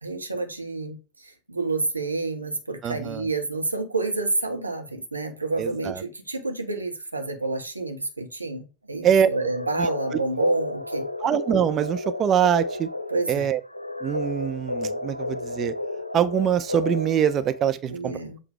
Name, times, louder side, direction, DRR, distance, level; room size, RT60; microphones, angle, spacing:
voice 1, 0.0-11.0 13.1-13.5 17.9-18.4, right 3 dB, 80° right, 1.4 m, -29 dB
voice 2, 2.8-3.3 5.6-6.0 9.0-9.3 9.8-9.9 11.2-12.9 13.3-13.6 14.0-15.7 16.1-18.2, right 9 dB, 30° right, 0.6 m, -23 dB
sound 1, 9.4-17.8, left 2 dB, 90° left, 0.4 m, -32 dB
7.8 x 3.3 x 4.6 m
figure-of-eight pair, 90°, 0 cm